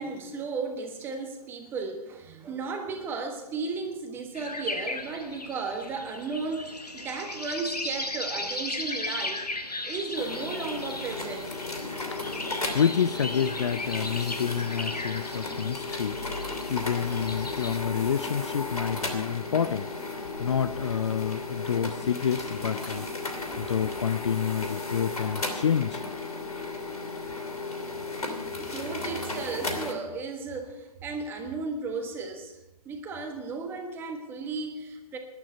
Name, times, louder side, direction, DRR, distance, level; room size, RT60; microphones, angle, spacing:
voice 1, 0.0-9.4 9.9-11.5 28.6-32.6 32.8-35.2, right 4 dB, 10° right, 4 dB, 1.4 m, -34 dB
sound 1, 4.3-17.8, left 2 dB, 85° left, 1.4 m, -37 dB
sound 2, 10.1-29.9, left 3 dB, 70° left, 2.8 m, -35 dB
voice 2, 12.7-16.2 16.7-19.9 20.4-23.1 23.6-26.0, left 7 dB, 45° left, 15 dB, 0.4 m, -28 dB
19.0 x 11.5 x 4.5 m, 1.0 s
figure-of-eight pair, 130°, 20 cm